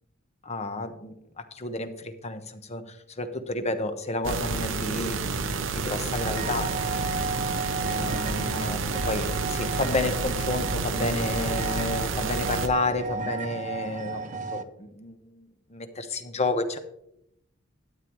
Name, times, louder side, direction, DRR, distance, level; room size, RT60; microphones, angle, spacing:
voice 1, 0.4-1.1 1.5-6.7 7.8-16.8, left 2 dB, 35° left, 8 dB, 1.0 m, -31 dB
sound 1, 4.2-12.7, right 4 dB, 80° right, 0.8 m, -30 dB
sound 2, 6.2-14.6, right 4 dB, 40° right, 0.7 m, -34 dB
12.5 x 9.6 x 3.1 m, 0.78 s
head